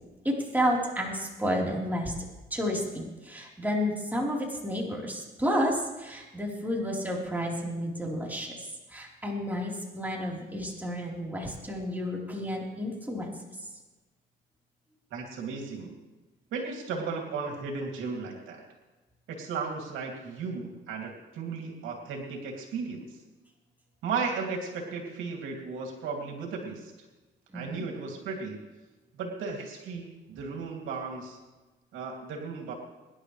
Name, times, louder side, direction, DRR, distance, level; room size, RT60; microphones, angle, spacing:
voice 1, 0.2-2.1 2.5-13.3 27.5-27.9, equal, 10° right, -3 dB, 4.0 m, -31 dB
voice 2, 15.1-16.0 16.5-18.6 19.3-23.2 24.0-26.9 27.5-28.6 29.1-31.4 31.9-32.7, right 4 dB, 90° right, 0 dB, 2.7 m, -35 dB
24.5 x 11.0 x 3.3 m, 1.2 s
cardioid pair, 90°, 20 cm